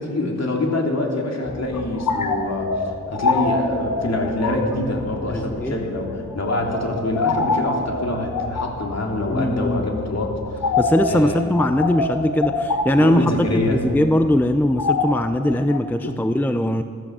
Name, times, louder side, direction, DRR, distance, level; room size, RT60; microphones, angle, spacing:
voice 1, 0.0-10.7 11.1-11.4 13.0-13.8 16.0-16.1, left 2 dB, 55° left, 0 dB, 3.0 m, -25 dB
sound 1, 1.4-15.8, left 3 dB, 75° left, 1.4 m, -27 dB
voice 2, 5.3-5.8 9.3-9.8 10.8-16.8, left 1 dB, 5° left, 9 dB, 0.5 m, -20 dB
15.0 x 13.0 x 7.3 m, 2.1 s
wide cardioid pair, 105°, 32 cm